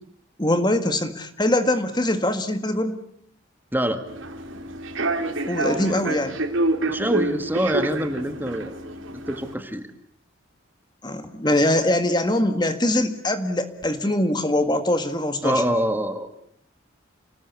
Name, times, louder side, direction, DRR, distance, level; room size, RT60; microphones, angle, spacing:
voice 1, 0.4-3.0 5.5-6.4 11.0-15.6, left 1 dB, 20° left, 8 dB, 1.9 m, -22 dB
Human voice / Subway metro underground, 4.1-9.5, right 2 dB, 80° right, 3.3 m, -28 dB
voice 2, 6.9-8.7 9.1-9.9 15.4-16.3, equal, 10° right, 7 dB, 1.7 m, -25 dB
29.5 x 19.5 x 8.4 m, 0.66 s
head